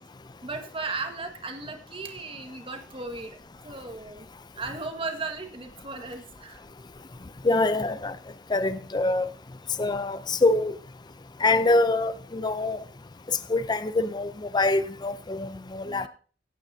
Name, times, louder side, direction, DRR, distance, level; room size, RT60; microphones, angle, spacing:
voice 1, 0.4-3.4 3.6-4.3 4.6-6.6 15.8-16.1, right 3 dB, 30° right, 1.6 m, -36 dB
voice 2, 7.4-8.2 8.5-9.3 9.8-10.7 11.4-12.8 13.5-16.1, left 2 dB, 20° left, 0.5 m, -25 dB
17.0 x 8.8 x 2.7 m
head